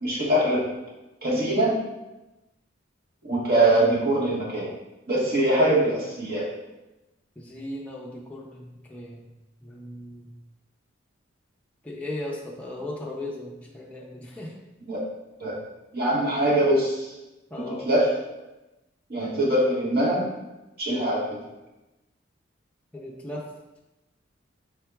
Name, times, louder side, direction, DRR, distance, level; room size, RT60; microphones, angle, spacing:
voice 1, 0.0-0.6 1.2-1.7 3.2-4.7 5.1-6.5 14.9-15.0 15.4-15.5 15.9-17.1 17.9-18.1 19.1-20.2 20.8-21.2, right 1 dB, 50° right, -5 dB, 1.2 m, -22 dB
voice 2, 7.4-9.3 9.6-10.3 11.8-14.5 17.5-17.9 22.9-23.5, left 1 dB, 5° left, -3 dB, 0.4 m, -37 dB
4.5 x 3.7 x 2.3 m, 1.0 s
head